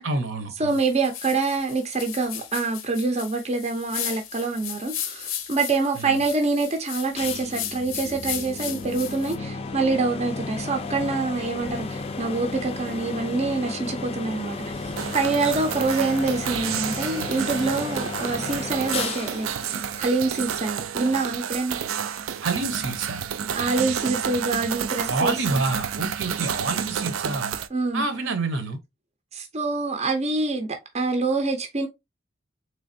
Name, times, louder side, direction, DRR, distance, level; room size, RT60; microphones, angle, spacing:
voice 1, 0.0-0.8 6.0-6.2 22.4-23.2 25.1-27.6 27.9-28.8, right 3 dB, 70° right, 0.8 m, -27 dB
voice 2, 0.6-21.8 23.5-25.6 27.7-28.0 29.3-31.9, right 3 dB, 35° right, 0.5 m, -26 dB
sound 1, 0.7-9.4, left 10 dB, 85° left, 0.6 m, -35 dB
sound 2, 7.2-20.7, left 3 dB, 30° left, 0.4 m, -34 dB
sound 3, 15.0-27.7, right 8 dB, 85° right, 0.4 m, -30 dB
3.5 x 3.2 x 2.6 m
head